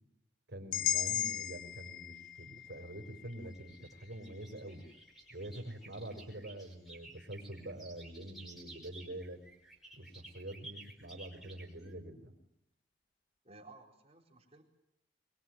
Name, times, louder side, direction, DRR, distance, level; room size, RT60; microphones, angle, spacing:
voice 1, 0.5-4.9 5.3-9.4 9.9-12.3, right 1 dB, 65° right, 3 dB, 4.8 m, -46 dB
sound 1, 0.7-4.7, left 12 dB, 50° left, 0.9 m, -38 dB
sound 2, 2.4-11.9, right 2 dB, ahead, 5.4 m, -55 dB
voice 2, 13.4-14.6, right 3 dB, 35° right, -1 dB, 4.3 m, -56 dB
24.5 x 23.0 x 9.3 m, 0.81 s
head